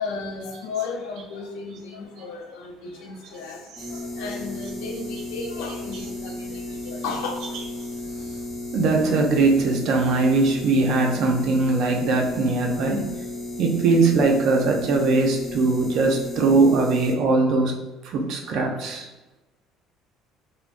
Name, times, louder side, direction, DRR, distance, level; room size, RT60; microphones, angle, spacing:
voice 1, 0.0-8.4, left 4 dB, 80° left, 2 dB, 0.5 m, -34 dB
sound 1, 3.8-17.1, left 2 dB, 15° left, 0.7 m, -34 dB
voice 2, 8.7-13.0 13.6-17.7 18.1-19.1, right 3 dB, 65° right, 2 dB, 0.5 m, -20 dB
3.2 x 2.1 x 2.5 m, 1.0 s
supercardioid pair, 95°, 0 cm